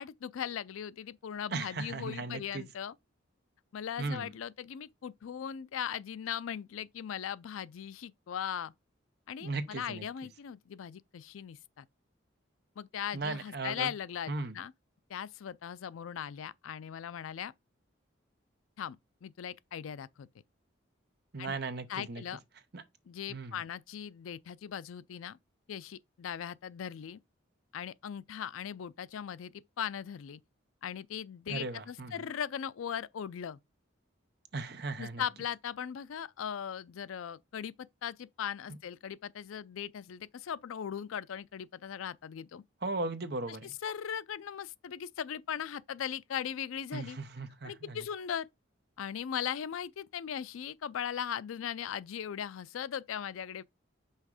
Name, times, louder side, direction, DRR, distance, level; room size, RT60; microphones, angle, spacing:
voice 1, 0.0-2.9 3.7-8.7 9.3-11.9 12.8-14.7 15.1-17.5 18.8-20.3 21.4-21.6 21.9-22.4 23.1-25.4 25.7-27.2 27.7-30.4 30.8-33.6 35.0-42.6 43.5-43.6 43.8-47.2 47.6-48.5 49.0-53.6, left 8 dB, 85° left, 0.4 m, -39 dB
voice 2, 1.5-2.6 4.0-4.3 9.4-10.1 13.1-13.9 14.3-14.5 21.3-22.2 22.7-22.8 23.3-23.6 31.5-32.1 34.5-35.2 42.8-43.7 46.9-48.0, right 3 dB, 50° right, 0.8 m, -37 dB
5.6 x 3.6 x 4.8 m
head